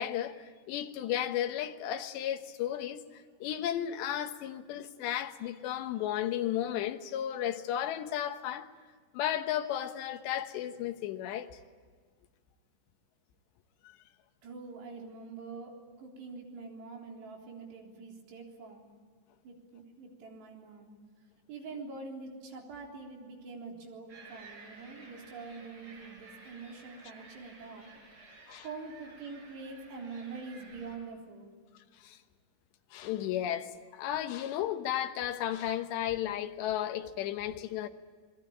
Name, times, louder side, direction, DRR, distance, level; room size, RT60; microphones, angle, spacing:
voice 1, 0.0-8.7 9.1-11.5 28.5-28.7 32.0-32.2 32.9-37.9, left 11 dB, 90° left, 3.4 m, -34 dB
voice 2, 14.4-18.8 19.4-20.9 21.5-27.9 28.6-31.5, right 4 dB, 80° right, 5.9 m, -45 dB
sound 1, 24.1-31.0, right 3 dB, 35° right, 6.2 m, -54 dB
27.5 x 21.0 x 8.8 m
omnidirectional pair, 4.8 m